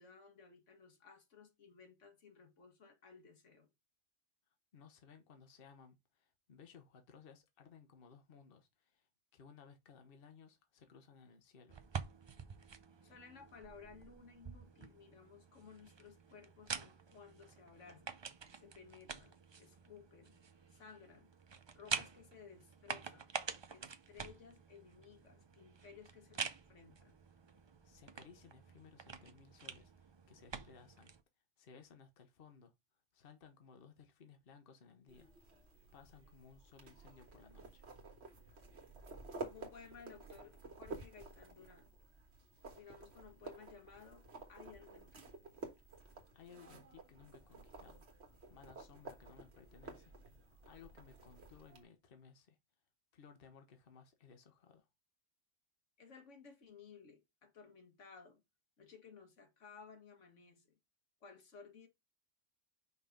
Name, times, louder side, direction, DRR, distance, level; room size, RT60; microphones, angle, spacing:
voice 1, 0.0-3.7 13.0-18.2 18.5-20.4 20.7-21.3 21.7-23.3 23.7-26.4 26.7-27.2 39.4-42.0 42.6-45.3 56.0-58.4 58.8-60.8 61.2-61.9, left 5 dB, 80° left, 1.7 m, -58 dB
voice 2, 4.7-11.8 27.8-31.1 31.6-32.7 33.1-35.6 35.9-37.9 45.9-48.1 48.5-52.6 53.1-54.9, left 6 dB, 50° left, 1.1 m, -60 dB
sound 1, 11.7-31.2, right 5 dB, 45° right, 0.3 m, -47 dB
sound 2, 35.1-51.8, right 3 dB, 60° right, 1.7 m, -52 dB
5.5 x 3.8 x 5.1 m
omnidirectional pair, 1.2 m